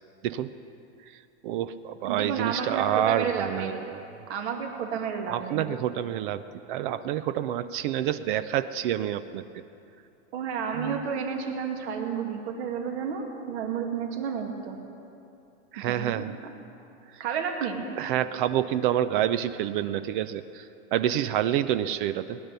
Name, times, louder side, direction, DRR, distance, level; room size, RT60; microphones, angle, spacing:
voice 1, 1.4-4.0 5.3-6.4 6.7-9.6 10.8-11.0 15.7-16.3 18.0-22.4, right 11 dB, 45° right, 13 dB, 0.5 m, -28 dB
voice 2, 2.0-3.8 4.3-5.6 10.3-14.8 15.8-16.5 17.2-17.9, right 6 dB, 65° right, 2 dB, 2.3 m, -31 dB
19.0 x 10.5 x 6.8 m, 2.8 s
supercardioid pair, 150°, 36 cm